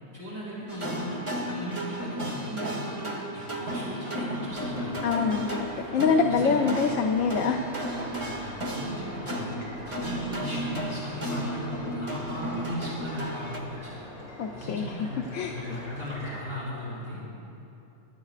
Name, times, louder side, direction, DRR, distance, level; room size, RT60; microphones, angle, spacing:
voice 1, 0.1-1.2 1.5-3.0 3.3-4.9 6.3-6.6 8.2-8.4 8.7-9.6 10.0-14.0 14.5-17.4, left 1 dB, 45° right, -9 dB, 3.5 m, -37 dB
sound 1, 0.7-13.6, right 1 dB, 25° right, 1.2 m, -34 dB
sound 2, 4.5-16.4, left 1 dB, 40° left, 2.7 m, -44 dB
voice 2, 5.0-7.6 14.4-15.0 15.3-15.5, left 5 dB, 75° left, 3 dB, 1.0 m, -25 dB
26.0 x 10.5 x 2.5 m, 2.9 s
omnidirectional pair, 1.4 m